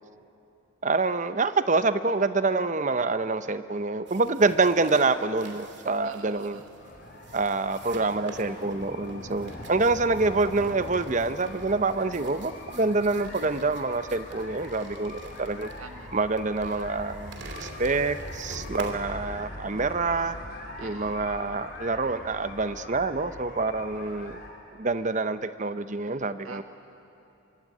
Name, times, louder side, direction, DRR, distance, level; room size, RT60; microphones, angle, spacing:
voice 1, 0.8-6.6 7.3-15.7 16.1-20.4 20.8-24.4 24.8-26.6, right 3 dB, 35° right, 12 dB, 0.7 m, -26 dB
sound 1, 4.1-18.9, right 2 dB, 55° right, 2.7 m, -47 dB
voice 2, 6.0-6.7 15.3-16.3 20.8-21.1 26.4-26.6, right 4 dB, 80° right, 5 dB, 1.7 m, -46 dB
sound 2, 6.8-24.5, left 1 dB, 45° left, 3.6 m, -42 dB
25.0 x 23.5 x 9.7 m, 2.9 s
head